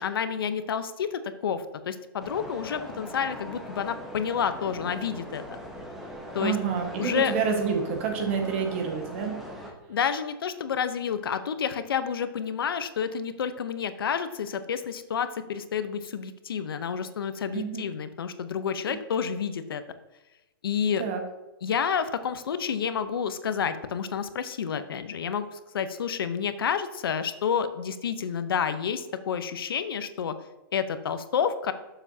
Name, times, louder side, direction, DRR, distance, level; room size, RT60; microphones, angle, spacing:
voice 1, 0.0-5.4 6.3-6.6 7.0-7.3 9.9-19.8 20.6-21.0 21.6-30.4 30.7-31.7, left 7 dB, 80° left, 11 dB, 0.8 m, -29 dB
sound 1, 2.2-9.7, equal, ahead, 0.9 m, -41 dB
voice 2, 6.4-9.4 17.5-17.9 18.9-19.0 21.0-21.2, right 6 dB, 35° right, 3 dB, 1.5 m, -28 dB
11.0 x 7.1 x 2.8 m, 1.0 s
hypercardioid pair, 175°, 12 cm